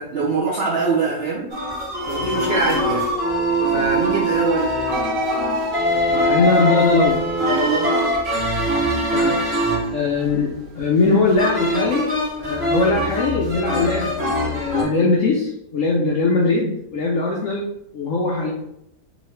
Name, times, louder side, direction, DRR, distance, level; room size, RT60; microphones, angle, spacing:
voice 1, 0.0-1.4 2.1-3.0 3.7-4.7 7.5-7.9, right 4 dB, 60° right, -6 dB, 0.6 m, -23 dB
sound 1, 1.5-14.8, equal, 40° right, 1.2 m, -22 dB
voice 2, 5.9-7.2 9.1-9.3 9.9-12.1 12.4-18.5, left 3 dB, 70° left, -2 dB, 0.8 m, -21 dB
3.7 x 2.8 x 3.2 m, 0.78 s
omnidirectional pair, 1.9 m